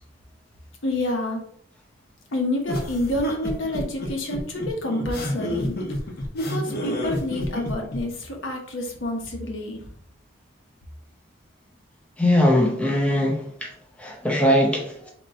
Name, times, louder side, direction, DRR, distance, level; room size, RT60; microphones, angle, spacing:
voice 1, 0.8-1.4 2.3-5.7 6.3-9.8, left 1 dB, 70° left, 1 dB, 1.1 m, -28 dB
sound 1, 2.7-8.0, equal, 50° left, 0.9 m, -29 dB
voice 2, 12.2-13.7 14.0-15.1, left 1 dB, 5° left, -1 dB, 0.7 m, -21 dB
3.9 x 3.0 x 4.3 m, 0.64 s
head